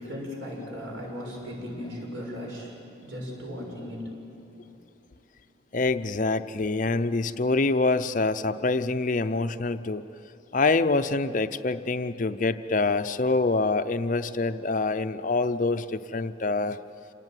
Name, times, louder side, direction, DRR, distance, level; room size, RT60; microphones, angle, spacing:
voice 1, 0.0-2.8 3.0-4.2 4.6-4.8, equal, 65° right, -1 dB, 7.0 m, -37 dB
voice 2, 5.7-10.0 10.5-16.8, left 3 dB, 40° left, 10 dB, 0.6 m, -25 dB
27.5 x 19.0 x 9.2 m, 2.8 s
head